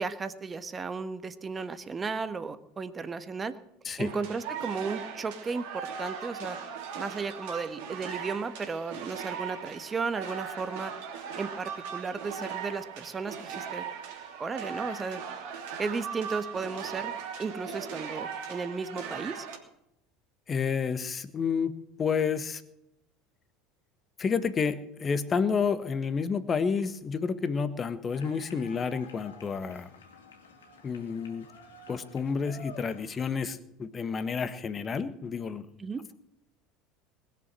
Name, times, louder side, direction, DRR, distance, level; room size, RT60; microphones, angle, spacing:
voice 1, 0.0-3.6 4.0-6.6 6.9-10.9 11.4-13.9 14.4-15.2 15.8-17.1 17.4-19.5 35.8-36.0, right 4 dB, 25° right, 12 dB, 1.3 m, -34 dB
sound 1, 4.0-19.6, right 7 dB, 65° right, 3.0 m, -39 dB
voice 2, 20.5-21.7 22.0-22.6 24.2-29.9 30.8-31.4 31.9-35.6, left 6 dB, 30° left, 12 dB, 1.4 m, -30 dB
sound 2, 28.1-33.3, left 4 dB, 80° left, 2.6 m, -50 dB
20.5 x 7.2 x 7.6 m, 0.80 s
hypercardioid pair, 75°, 0 cm